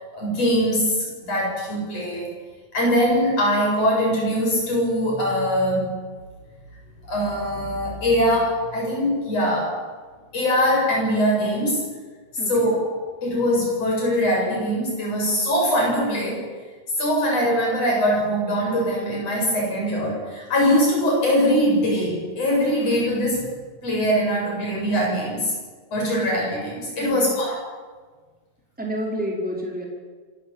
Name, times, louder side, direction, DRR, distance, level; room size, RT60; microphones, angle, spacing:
voice 1, 0.0-2.3 2.7-5.9 7.1-9.8 10.3-11.8 12.5-12.8 13.2-16.5 17.0-23.5 23.8-25.5 25.9-27.6, equal, 60° left, -2 dB, 9.1 m, -22 dB
voice 2, 12.4-12.7 27.0-27.1 28.8-29.9, equal, 5° right, -2 dB, 4.7 m, -29 dB
26.0 x 14.5 x 8.9 m, 1.4 s
omnidirectional pair, 3.3 m